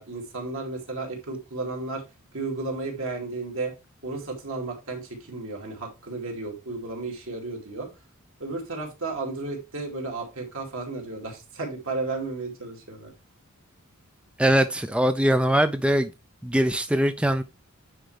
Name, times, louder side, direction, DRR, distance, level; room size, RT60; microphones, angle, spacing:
voice 1, 0.0-2.0 2.3-3.7 4.0-7.9 8.4-13.1, right 3 dB, 65° right, 2.5 m, -33 dB
voice 2, 14.4-16.1 16.4-17.4, right 1 dB, 5° right, 0.4 m, -22 dB
9.2 x 4.6 x 3.3 m
head